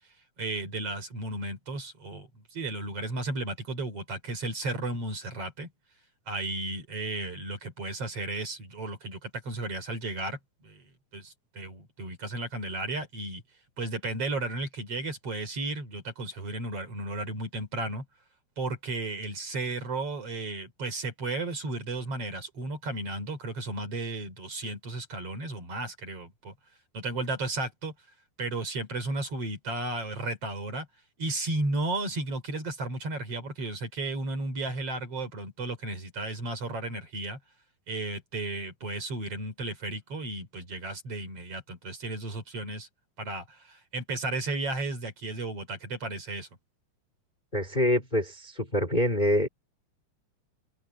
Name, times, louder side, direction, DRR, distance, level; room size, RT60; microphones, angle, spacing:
voice 1, 0.4-5.7 6.3-10.9 11.1-13.4 13.8-18.1 18.6-26.5 26.9-27.9 28.4-30.9 31.2-37.4 37.9-42.9 43.2-46.5, right 2 dB, 45° right, 5.2 m, -34 dB
voice 2, 47.5-49.5, left 1 dB, 15° left, 3.2 m, -25 dB
omnidirectional pair, 3.7 m